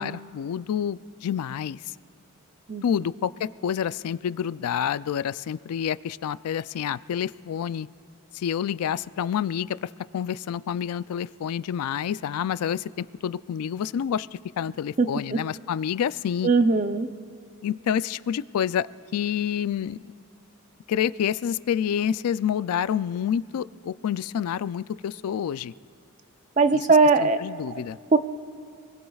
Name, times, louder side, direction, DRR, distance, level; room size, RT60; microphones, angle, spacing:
voice 1, 0.0-1.9 2.8-7.9 8.3-14.3 14.6-16.5 17.6-18.9 19.1-20.1 20.9-25.7 26.7-26.9 27.2-28.0, left 8 dB, 85° left, 17 dB, 0.3 m, -28 dB
voice 2, 15.0-15.4 16.4-17.1 26.6-27.4 28.1-28.2, right 4 dB, 35° right, 9 dB, 0.6 m, -20 dB
28.5 x 20.0 x 2.4 m, 2.5 s
head